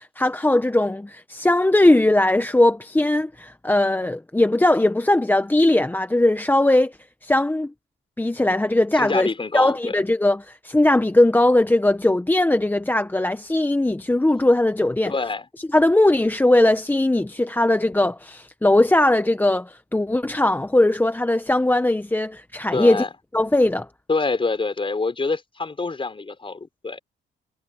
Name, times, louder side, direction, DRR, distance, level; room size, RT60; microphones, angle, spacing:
voice 1, 0.0-7.0 7.2-7.7 8.2-9.3 9.5-15.1 15.7-23.0 23.3-23.9, left 1 dB, 10° left, 1.0 m, -19 dB
voice 2, 8.9-10.0 15.1-15.5 22.7-23.1 24.1-27.0, left 3 dB, 25° left, 5.4 m, -26 dB
cardioid pair, 90°, 20 cm